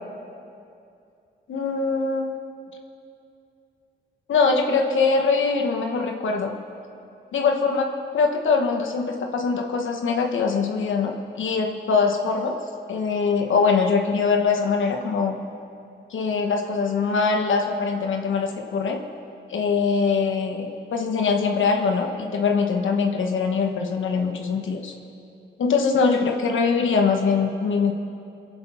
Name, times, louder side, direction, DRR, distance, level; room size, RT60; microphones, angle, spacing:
voice 1, 1.5-2.3 4.3-6.6 7.3-7.9 8.1-12.6 12.9-15.4 16.1-19.0 19.5-24.9 25.6-27.9, left 5 dB, 85° left, 2 dB, 1.2 m, -22 dB
22.5 x 7.9 x 5.7 m, 2.6 s
cardioid pair, 70°, 20 cm